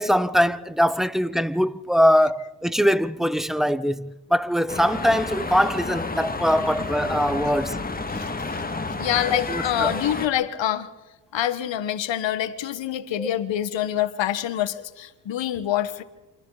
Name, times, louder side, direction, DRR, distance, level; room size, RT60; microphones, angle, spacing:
voice 1, 0.0-7.8 9.5-9.9 13.2-13.3, equal, ahead, 0.9 m, -22 dB
sound 1, 4.7-10.3, left 3 dB, 20° left, 2.3 m, -30 dB
voice 2, 8.1-8.6 9.0-10.9 11.3-16.0, left 11 dB, 70° left, 1.6 m, -26 dB
29.0 x 25.5 x 4.2 m
cardioid pair, 70°, 47 cm